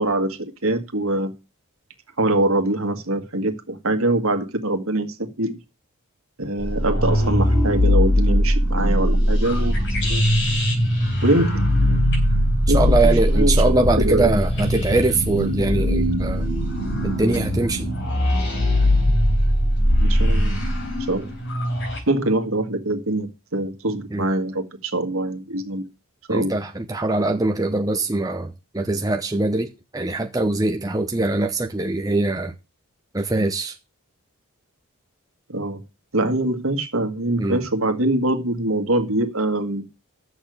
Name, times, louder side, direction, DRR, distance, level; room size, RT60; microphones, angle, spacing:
voice 1, 0.0-1.3 2.2-5.6 6.4-10.2 11.2-12.1 12.7-14.4 20.0-20.6 21.1-21.3 22.1-25.8 26.3-26.6 35.5-35.8 36.1-39.9, right 1 dB, 65° right, 1.8 m, -24 dB
sound 1, 6.6-22.0, equal, 55° left, 4.2 m, -20 dB
voice 2, 12.7-16.5 17.0-17.9 24.1-24.3 26.3-32.5 33.1-33.7 37.4-37.6, right 2 dB, 15° right, 0.8 m, -22 dB
7.9 x 6.9 x 7.9 m
head